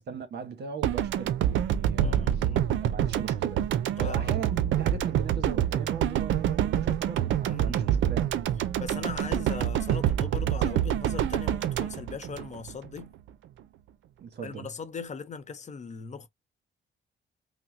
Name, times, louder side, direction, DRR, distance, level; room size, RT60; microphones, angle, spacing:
voice 1, 0.0-2.5 2.8-3.7 4.0-8.3 14.2-14.7, right 6 dB, 55° right, 1.1 m, -38 dB
sound 1, 0.8-13.0, right 10 dB, 75° right, 0.5 m, -27 dB
voice 2, 2.0-2.6 4.0-4.3 7.5-8.0 8.8-13.1 14.4-16.3, left 5 dB, 35° left, 0.7 m, -39 dB
5.5 x 2.1 x 2.6 m
cardioid pair, 90°, 20 cm